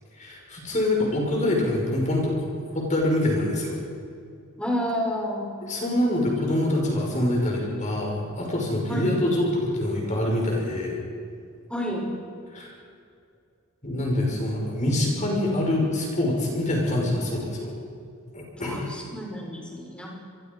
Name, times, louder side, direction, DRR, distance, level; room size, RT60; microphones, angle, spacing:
voice 1, 0.2-2.4 2.7-3.7 5.6-11.0 12.5-12.7 13.8-17.7 18.3-18.9, left 1 dB, 35° left, -1 dB, 6.1 m, -25 dB
voice 2, 4.6-5.5 8.9-9.2 11.7-12.1 18.6-20.1, equal, 5° left, -2 dB, 5.9 m, -30 dB
28.0 x 23.0 x 5.6 m, 2.3 s
head